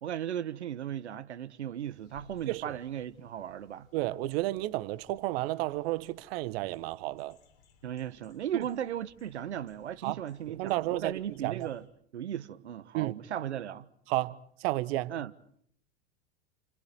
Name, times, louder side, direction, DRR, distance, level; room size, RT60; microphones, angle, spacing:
voice 1, 0.0-3.9 7.8-11.8 12.1-13.9 15.1-15.3, right 10 dB, 80° right, 1.3 m, -36 dB
sound 1, 1.8-11.9, left 3 dB, 50° left, 6.8 m, -63 dB
voice 2, 2.5-2.8 3.9-7.4 8.5-8.6 10.0-10.2 10.5-11.1 11.4-11.7 12.9-13.2 14.1-15.1, right 17 dB, 60° right, 1.5 m, -32 dB
29.5 x 29.5 x 4.6 m
hypercardioid pair, 90°, 34 cm